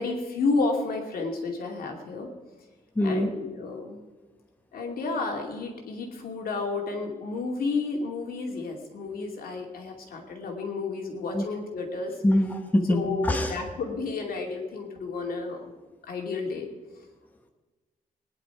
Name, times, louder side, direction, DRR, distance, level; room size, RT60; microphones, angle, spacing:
voice 1, 0.0-2.3 3.0-4.0 4.7-12.2 12.9-15.7 16.1-16.7, left 3 dB, 75° left, 2 dB, 2.7 m, -31 dB
voice 2, 3.0-3.3 11.3-11.4 12.2-13.5, left 1 dB, 10° left, 3 dB, 1.2 m, -24 dB
21.5 x 10.5 x 4.9 m, 1.3 s
wide cardioid pair, 170°, 15 cm